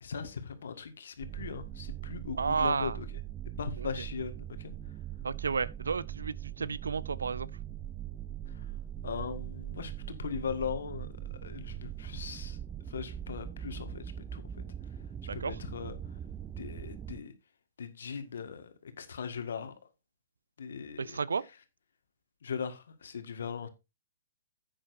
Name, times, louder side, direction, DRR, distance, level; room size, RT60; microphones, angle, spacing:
voice 1, 0.0-3.1 3.6-4.7 8.5-8.7 9.0-11.1 11.4-12.6 12.9-14.0 14.3-14.6 15.3-16.0 16.6-17.3 17.8-19.7 20.6-21.2 22.4-23.7, left 6 dB, 70° left, 1.7 m, -39 dB
sound 1, 1.2-17.2, right 11 dB, 20° right, 0.5 m, -41 dB
voice 2, 2.4-3.0 3.8-3.9 5.2-7.5 15.3-15.6 21.0-21.4, right 5 dB, 80° right, 0.5 m, -32 dB
11.0 x 8.7 x 2.6 m
hypercardioid pair, 125°, 0 cm